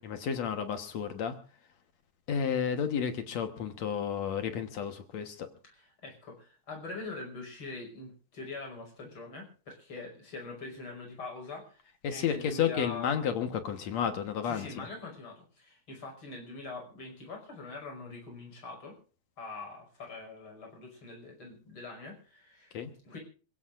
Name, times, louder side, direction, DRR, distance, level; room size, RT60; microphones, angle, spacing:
voice 1, 0.0-1.3 2.3-5.5 12.0-14.9 22.7-22.9, left 7 dB, 60° left, 7 dB, 2.3 m, -32 dB
voice 2, 5.7-11.8 12.1-13.3 14.4-18.9 19.4-22.7 23.0-23.2, left 3 dB, 40° left, 2 dB, 6.4 m, -43 dB
28.0 x 16.5 x 2.5 m, 0.38 s
omnidirectional pair, 3.7 m